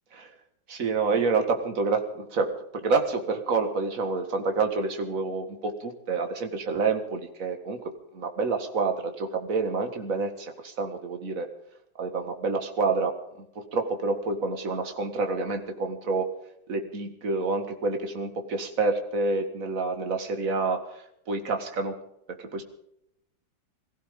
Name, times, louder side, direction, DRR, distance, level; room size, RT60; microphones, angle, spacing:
voice 1, 0.7-2.5 2.8-7.8 8.1-11.5 12.0-16.3 16.7-20.8 21.3-22.0 22.3-22.6, right 4 dB, 45° right, 5 dB, 2.2 m, -28 dB
22.5 x 15.5 x 3.8 m, 0.75 s
omnidirectional pair, 2.2 m